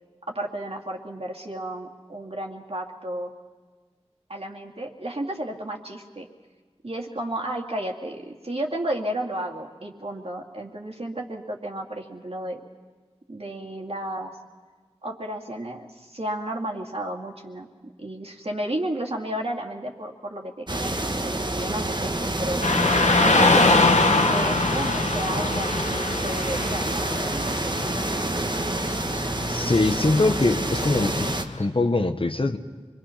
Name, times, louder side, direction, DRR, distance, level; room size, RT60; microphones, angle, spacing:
voice 1, 0.3-3.3 4.3-6.3 6.8-12.6 13.3-14.3 15.0-22.6 23.2-23.8 24.2-27.6, right 1 dB, 60° right, 0 dB, 2.3 m, -32 dB
sound 1, 20.7-31.4, right 1 dB, 40° right, 1.3 m, -28 dB
Car passing by / Traffic noise roadway noise, 22.6-31.6, left 3 dB, 90° left, 1.2 m, -24 dB
voice 2, 29.5-32.6, left 2 dB, 50° left, 7 dB, 1.2 m, -23 dB
26.0 x 22.5 x 5.8 m, 1.4 s
wide cardioid pair, 45°, 12 cm